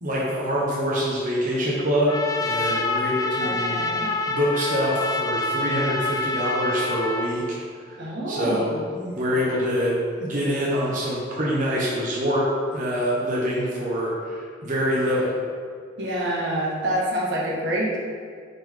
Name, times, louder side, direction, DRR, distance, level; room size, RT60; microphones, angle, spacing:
voice 1, 0.0-7.6 7.8-9.9 10.2-12.5 12.7-15.3, equal, 45° right, -6 dB, 1.2 m, -25 dB
Trumpet, 2.1-7.3, left 2 dB, 20° left, 0.3 m, -26 dB
voice 2, 3.4-4.1 8.0-8.8 16.0-18.0, right 1 dB, 70° right, -4 dB, 1.4 m, -27 dB
5.6 x 5.6 x 3.6 m, 2.1 s
head